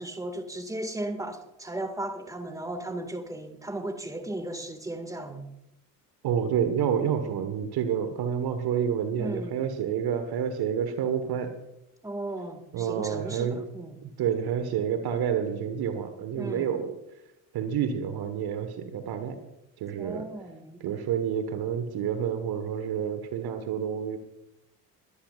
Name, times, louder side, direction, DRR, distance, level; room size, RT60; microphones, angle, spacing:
voice 1, 0.0-5.5 9.2-9.6 12.0-14.0 16.4-16.8 20.0-20.8, right 1 dB, 5° right, 8 dB, 2.0 m, -36 dB
voice 2, 6.2-11.5 12.7-13.6 14.2-16.9 17.5-19.4 19.8-20.3 20.8-24.2, right 8 dB, 50° right, 9 dB, 1.5 m, -29 dB
22.5 x 13.5 x 2.5 m, 0.85 s
figure-of-eight pair, 55°, 49 cm